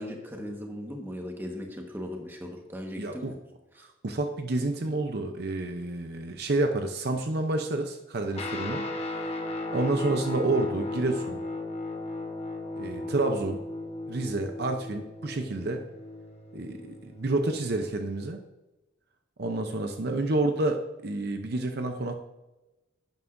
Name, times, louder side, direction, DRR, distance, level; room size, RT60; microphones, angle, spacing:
voice 1, 0.0-3.3 3.8-3.9, equal, 10° right, 1 dB, 1.4 m, -38 dB
voice 2, 3.0-3.4 4.0-9.3 9.7-11.4 12.8-13.6 14.1-15.8 16.5-18.4 19.4-22.1, right 2 dB, 55° right, 5 dB, 0.7 m, -29 dB
Guitar, 8.3-18.0, left 2 dB, 30° left, 1.1 m, -36 dB
12.0 x 9.3 x 2.6 m, 1.0 s
head